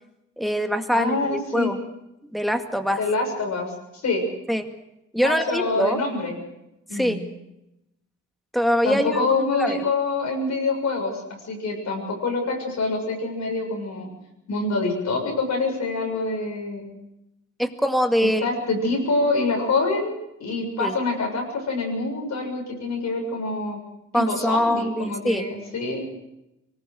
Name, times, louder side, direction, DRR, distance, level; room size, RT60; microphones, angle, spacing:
voice 1, 0.4-1.8 2.3-3.0 4.5-4.7 5.1-6.0 6.9-7.2 8.5-9.8 17.6-18.5 20.8-20.9 24.1-25.5, equal, ahead, 6 dB, 2.1 m, -23 dB
voice 2, 0.9-1.7 3.0-4.2 5.2-6.3 6.9-7.2 8.8-14.1 14.5-16.9 18.4-20.1 20.4-23.8 24.1-26.0, left 3 dB, 65° left, 0 dB, 7.4 m, -26 dB
24.5 x 19.5 x 6.5 m, 0.88 s
cardioid pair, 115°, 29 cm